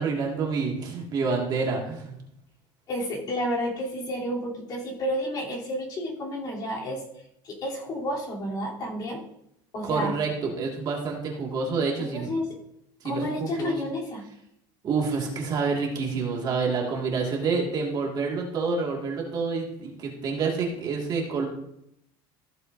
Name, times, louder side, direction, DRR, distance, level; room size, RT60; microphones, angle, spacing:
voice 1, 0.0-2.1 9.8-12.3 13.0-13.8 14.8-21.5, right 4 dB, 35° right, -1 dB, 1.9 m, -28 dB
voice 2, 2.9-7.0 7.4-9.2 9.7-10.1 12.1-12.5 13.0-14.2, equal, 35° left, -4 dB, 3.1 m, -30 dB
15.0 x 8.2 x 2.6 m, 0.77 s
cardioid pair, 150°, 12 cm